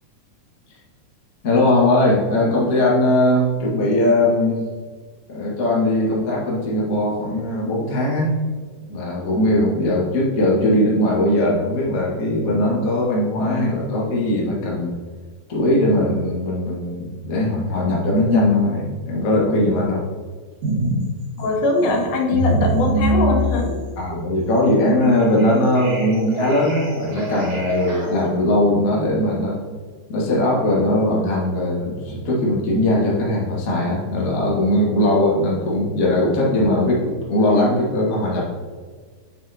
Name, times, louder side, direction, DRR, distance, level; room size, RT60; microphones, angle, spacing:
voice 1, 1.4-4.6 5.3-8.4 8.9-15.0 15.5-20.0 24.0-29.6 30.1-38.5, left 1 dB, 40° left, -5 dB, 1.2 m, -19 dB
sound 1, 20.6-21.1 21.4-28.3, right 1 dB, 50° right, 2.6 m, -24 dB
voice 2, 21.4-23.7, left 2 dB, 85° left, 0 dB, 3.0 m, -21 dB
8.4 x 5.6 x 2.9 m, 1.6 s
omnidirectional pair, 4.1 m